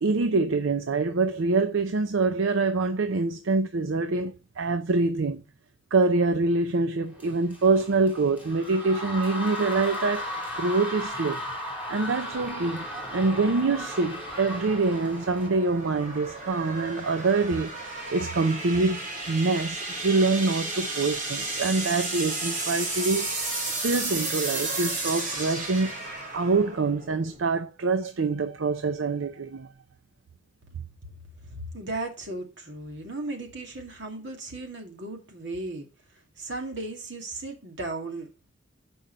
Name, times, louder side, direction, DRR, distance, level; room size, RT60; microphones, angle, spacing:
voice 1, 0.0-5.4 5.9-11.4 11.9-12.9 13.1-17.7 18.1-19.0 19.3-23.3 23.7-25.9 26.3-29.7, right 3 dB, 85° right, 0.6 m, -25 dB
sound 1, 7.2-15.5, equal, 5° right, 3.2 m, -36 dB
sound 2, 12.1-27.5, right 2 dB, 45° right, 2.8 m, -34 dB
voice 2, 31.4-35.9 36.4-38.5, right 2 dB, 65° right, 2.1 m, -36 dB
7.5 x 5.4 x 5.3 m
head